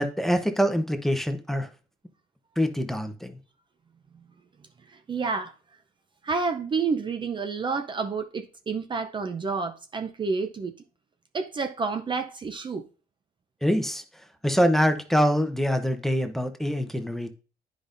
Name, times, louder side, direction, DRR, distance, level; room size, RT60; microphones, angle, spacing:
voice 1, 0.0-1.7 2.6-3.4 13.6-14.0 14.4-17.3, equal, ahead, 0.8 m, -24 dB
voice 2, 4.9-5.5 6.2-10.7 11.3-12.8, right 4 dB, 30° right, 0.6 m, -29 dB
9.6 x 5.2 x 2.6 m
cardioid pair, 110°, 17 cm